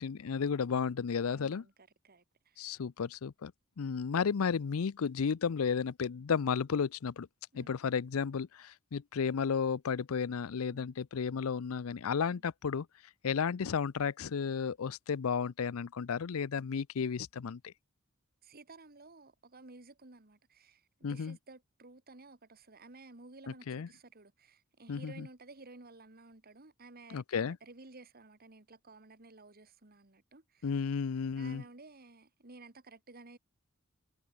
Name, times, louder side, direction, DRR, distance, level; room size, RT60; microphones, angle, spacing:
voice 1, 0.0-1.6 2.6-3.5 3.8-7.3 7.5-12.9 13.2-17.7 21.0-21.4 23.5-23.9 24.9-25.3 27.1-27.6 30.6-31.6, left 6 dB, 85° left, 0.5 m, -33 dB
voice 2, 1.3-2.8 7.5-7.8 10.7-10.9 12.3-12.4 18.4-30.7 31.4-33.4, right 3 dB, 45° right, 2.2 m, -54 dB
head